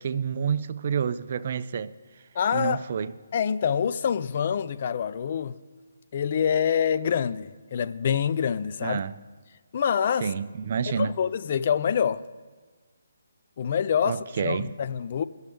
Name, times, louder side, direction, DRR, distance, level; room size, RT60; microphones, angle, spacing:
voice 1, 0.0-1.9 2.5-3.1 8.8-9.2 10.2-11.1 14.0-14.7, right 7 dB, 50° right, 0.3 m, -28 dB
voice 2, 2.4-2.8 3.3-5.6 6.1-9.0 9.7-10.3 10.9-12.2 13.6-15.2, left 7 dB, 45° left, 0.3 m, -26 dB
18.0 x 6.3 x 3.4 m
figure-of-eight pair, 145°, 0 cm